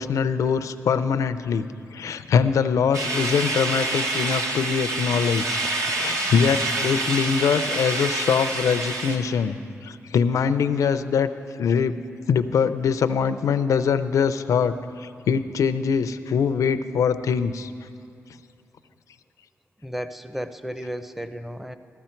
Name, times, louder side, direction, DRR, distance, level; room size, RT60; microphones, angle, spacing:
voice 1, 0.0-1.7 1.9-5.6 5.9-9.6 9.8-11.3 11.6-12.0 12.3-14.7 15.0-17.7, left 6 dB, 85° left, 11 dB, 0.5 m, -23 dB
sound 1, 2.9-9.2, right 2 dB, 75° right, 1.2 m, -27 dB
voice 2, 19.8-21.7, equal, 5° right, 10 dB, 0.6 m, -33 dB
14.5 x 14.0 x 4.5 m, 2.5 s
cardioid pair, 85°, 5 cm